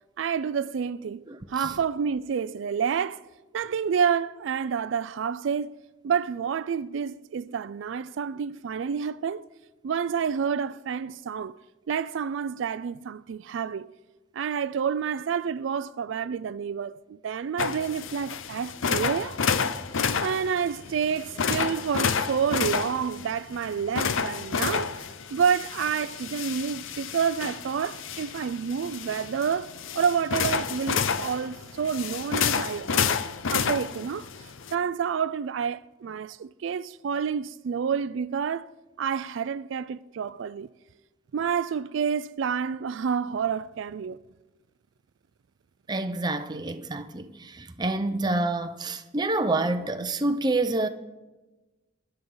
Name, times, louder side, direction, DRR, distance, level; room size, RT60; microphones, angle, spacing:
voice 1, 0.2-3.2 3.5-5.8 6.0-9.4 9.8-11.6 11.9-13.9 14.3-19.4 20.2-25.0 25.3-33.2 33.5-38.7 39.0-40.7 41.3-44.2, right 7 dB, 70° right, 0.4 m, -29 dB
sound 1, 17.6-34.7, left 6 dB, 80° left, 0.6 m, -30 dB
voice 2, 45.9-50.9, right 2 dB, 20° right, 0.6 m, -27 dB
20.0 x 11.0 x 3.9 m
head